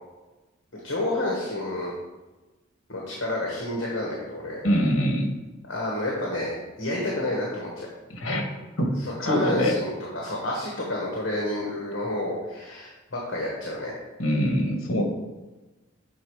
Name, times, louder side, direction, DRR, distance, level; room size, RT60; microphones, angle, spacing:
voice 1, 0.7-1.9 2.9-4.6 5.7-7.9 9.0-14.0, left 1 dB, 60° left, -3 dB, 1.4 m, -30 dB
voice 2, 4.6-5.3 8.1-8.4 8.8-8.9 9.2-9.8 14.2-15.0, equal, 75° left, 3 dB, 1.2 m, -23 dB
7.3 x 4.0 x 4.8 m, 1.1 s
head